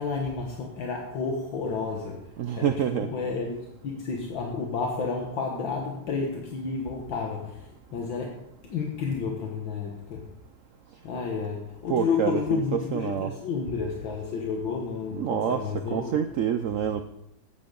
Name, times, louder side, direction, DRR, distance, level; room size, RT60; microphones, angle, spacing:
voice 1, 0.0-3.6 3.8-10.4 11.0-16.2, left 5 dB, 75° left, 2.0 m, -31 dB
voice 2, 2.4-3.1 11.9-13.3 15.1-17.0, right 9 dB, 85° right, 0.7 m, -27 dB
14.0 x 9.9 x 3.9 m
omnidirectional pair, 2.1 m